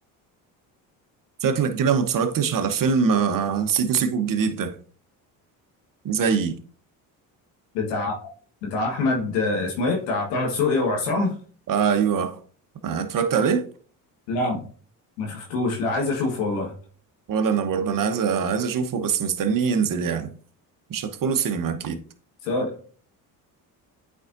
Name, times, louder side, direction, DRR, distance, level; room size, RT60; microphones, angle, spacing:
voice 1, 1.4-4.8 6.0-6.6 11.7-12.4 12.8-13.7 17.3-20.3 20.9-22.0, right 6 dB, 45° right, 1.1 m, -23 dB
voice 2, 7.7-8.1 8.6-11.4 14.3-14.6 15.2-16.7 22.4-22.7, left 3 dB, 85° left, 1.5 m, -25 dB
8.4 x 4.6 x 2.6 m
hypercardioid pair, 65°, 46 cm